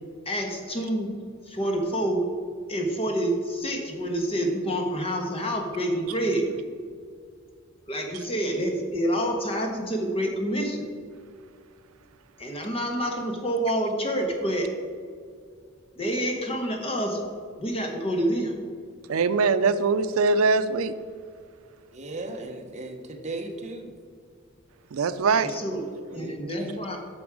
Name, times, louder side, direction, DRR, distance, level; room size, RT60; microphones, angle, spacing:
voice 1, 0.2-1.1 1.5-2.2 2.7-6.5 7.8-10.9 12.4-14.7 15.9-17.2 17.6-18.6 25.3-27.0, right 1 dB, 30° left, 2 dB, 1.2 m, -27 dB
voice 2, 19.1-20.9 24.9-25.6, right 4 dB, 90° right, 12 dB, 0.4 m, -22 dB
voice 3, 21.9-23.9 26.1-26.8, right 2 dB, 35° right, 3 dB, 0.9 m, -37 dB
9.6 x 6.2 x 4.8 m, 2.1 s
head